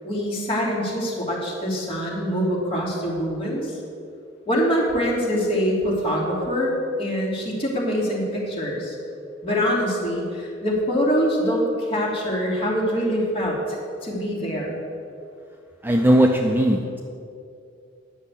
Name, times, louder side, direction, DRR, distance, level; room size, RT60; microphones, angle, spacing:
voice 1, 0.0-3.8 4.5-9.0 9.4-14.8, equal, 30° left, -5 dB, 2.9 m, -24 dB
voice 2, 15.8-17.0, right 1 dB, 10° right, 2 dB, 0.5 m, -18 dB
10.0 x 6.4 x 8.3 m, 2.5 s
head